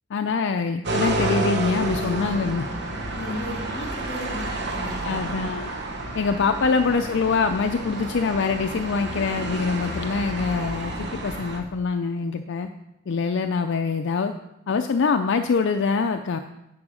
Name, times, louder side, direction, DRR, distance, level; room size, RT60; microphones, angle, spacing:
voice 1, 0.1-2.7 5.0-5.7 6.1-12.7 13.1-14.3 14.7-16.4, left 5 dB, 60° left, 7 dB, 0.4 m, -24 dB
sound 1, 0.8-11.6, right 2 dB, 60° right, 1.2 m, -30 dB
voice 2, 3.2-5.2, left 1 dB, 30° left, 0 dB, 2.3 m, -35 dB
9.7 x 4.8 x 6.2 m, 0.92 s
head